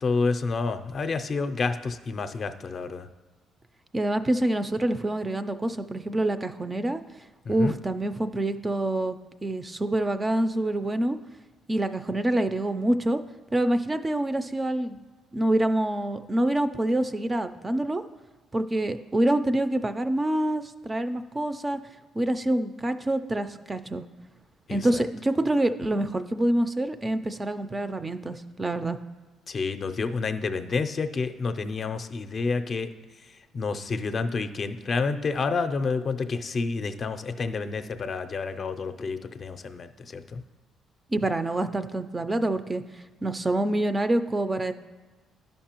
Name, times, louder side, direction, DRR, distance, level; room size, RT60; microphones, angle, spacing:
voice 1, 0.0-3.1 7.5-7.7 24.7-24.8 29.5-32.9 33.5-40.4, left 4 dB, 40° left, 9 dB, 0.4 m, -29 dB
voice 2, 3.9-7.0 7.5-9.2 9.4-11.2 11.7-13.2 13.5-15.0 15.3-18.0 18.5-21.8 22.1-24.0 24.7-29.0 41.1-44.7, right 1 dB, 20° right, 10 dB, 0.3 m, -26 dB
11.5 x 5.3 x 2.9 m, 1.3 s
cardioid pair, 105°, 0 cm